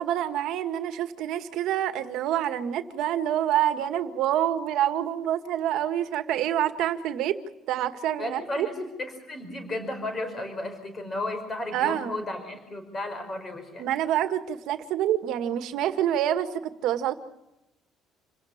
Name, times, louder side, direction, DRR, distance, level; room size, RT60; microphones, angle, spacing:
voice 1, 0.0-7.4 7.7-8.7 11.7-12.2 13.8-17.1, right 11 dB, 60° right, 9 dB, 1.9 m, -27 dB
voice 2, 8.2-13.9, left 2 dB, 20° left, 7 dB, 5.3 m, -34 dB
27.5 x 17.5 x 7.3 m, 0.92 s
cardioid pair, 170°, 0 cm